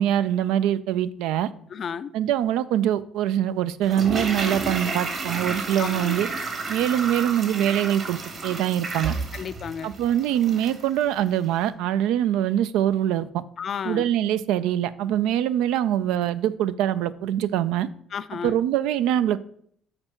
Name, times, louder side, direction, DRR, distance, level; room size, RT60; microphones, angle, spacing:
voice 1, 0.0-1.5 2.1-6.3 6.7-9.1 9.8-13.4 13.8-17.9 18.4-19.4, right 11 dB, 80° right, 0.4 m, -23 dB
voice 2, 1.7-2.1 5.8-6.2 9.3-9.9 13.6-14.1 18.1-18.6, left 7 dB, 50° left, 0.4 m, -32 dB
Toilet flush, 3.8-10.9 11.2-11.3, right 3 dB, 50° right, 1.5 m, -31 dB
6.6 x 4.4 x 5.8 m
supercardioid pair, 75°, 0 cm